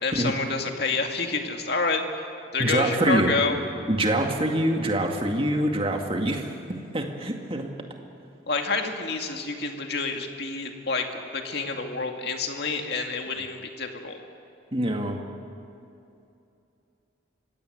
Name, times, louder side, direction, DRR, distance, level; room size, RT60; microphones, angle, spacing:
voice 1, 0.0-2.0 2.5-3.6 8.5-14.2, left 4 dB, 55° left, 4 dB, 2.2 m, -28 dB
voice 2, 2.6-3.3 3.9-6.5 6.9-7.7 14.7-15.2, right 1 dB, 30° right, 2 dB, 2.1 m, -25 dB
25.0 x 16.5 x 9.4 m, 2.7 s
head